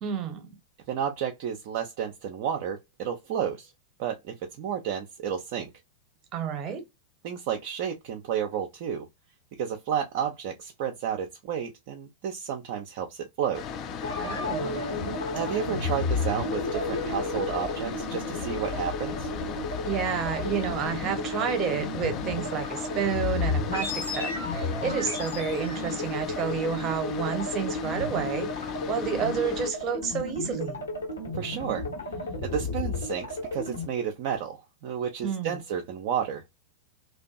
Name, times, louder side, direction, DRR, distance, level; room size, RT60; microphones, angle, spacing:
voice 1, 0.0-0.5 6.3-6.8 14.2-14.9 19.8-28.5 28.9-30.9 35.2-35.6, right 7 dB, 30° right, 0.8 m, -30 dB
voice 2, 0.9-3.7 4.0-5.7 7.2-9.1 9.6-13.6 15.3-19.3 31.3-31.8 32.4-34.6 34.8-36.4, right 8 dB, 50° right, 0.4 m, -31 dB
sound 1, 13.5-29.7, left 7 dB, 35° left, 0.3 m, -36 dB
sound 2, 14.0-33.8, left 2 dB, 70° left, 1.2 m, -33 dB
2.5 x 2.2 x 2.2 m
figure-of-eight pair, 90°, 0 cm